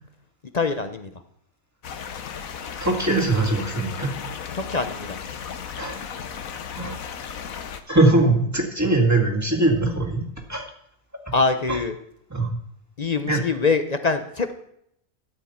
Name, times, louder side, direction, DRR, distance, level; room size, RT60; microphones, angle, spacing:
voice 1, 0.5-1.1 4.6-5.2 11.3-11.9 13.0-14.5, left 4 dB, 40° left, 8 dB, 0.6 m, -24 dB
sound 1, 1.8-7.8, left 7 dB, 75° left, 1.3 m, -35 dB
voice 2, 2.8-4.1 5.8-6.0 6.8-6.9 7.9-10.2 10.5-10.6 12.3-12.6 13.3-13.4, right 2 dB, 10° right, 1 dB, 1.9 m, -21 dB
13.5 x 9.6 x 4.4 m, 0.73 s
omnidirectional pair, 1.5 m